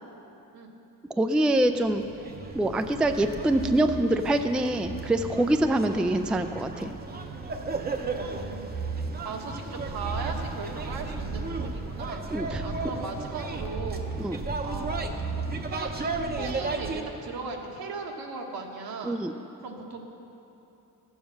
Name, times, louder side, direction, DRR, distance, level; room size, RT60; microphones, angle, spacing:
voice 1, 1.2-2.0 2.5-6.9 12.3-12.7 14.2-14.4 19.0-19.3, right 1 dB, 5° right, 8 dB, 0.3 m, -25 dB
sound 1, 1.6-17.0, right 3 dB, 25° right, 0.7 m, -34 dB
voice 2, 8.1-8.7 9.2-12.2 12.6-14.1 14.6-14.9 15.7-15.9 16.4-19.2 19.6-20.0, right 4 dB, 80° right, 1 dB, 1.5 m, -37 dB
14.5 x 7.2 x 6.3 m, 2.9 s
cardioid pair, 120°, 36 cm